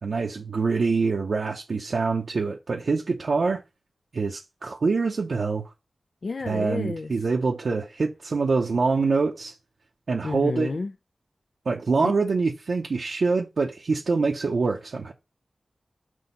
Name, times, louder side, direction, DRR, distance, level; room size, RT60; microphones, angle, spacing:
voice 1, 0.0-3.6 4.1-5.7 6.4-9.5 10.1-10.7 11.7-15.1, right 4 dB, 75° right, 0.8 m, -25 dB
voice 2, 6.2-7.1 10.2-10.9 12.0-12.1, left 3 dB, 60° left, 0.4 m, -30 dB
6.2 x 2.9 x 5.4 m
wide cardioid pair, 85°, 0 cm